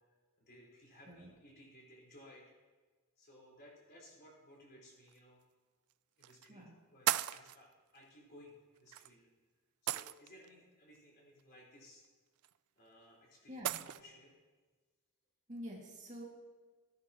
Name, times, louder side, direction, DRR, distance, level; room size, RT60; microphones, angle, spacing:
voice 1, 0.4-2.4 3.2-5.4 6.2-9.3 9.8-12.0 12.8-14.4, left 1 dB, 45° left, -4 dB, 4.5 m, -59 dB
sound 1, 5.1-5.2 6.2-6.5 7.1-7.6 8.9-9.1 9.9-10.5 12.4-12.5 13.6-14.0, right 13 dB, 75° right, 0.3 m, -35 dB
voice 2, 15.5-16.2, equal, 35° right, -3 dB, 2.2 m, -47 dB
18.0 x 10.5 x 3.1 m, 1.4 s
head